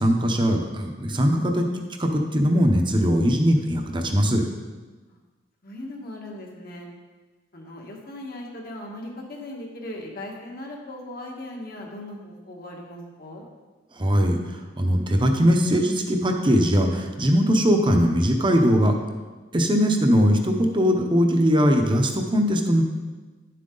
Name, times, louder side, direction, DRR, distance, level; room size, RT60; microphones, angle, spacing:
voice 1, 0.0-4.5 14.0-18.9 19.5-22.8, equal, 25° right, 3 dB, 0.8 m, -20 dB
voice 2, 5.6-6.9 7.5-13.4, left 1 dB, 55° left, -1 dB, 1.7 m, -38 dB
10.0 x 7.6 x 3.9 m, 1.3 s
head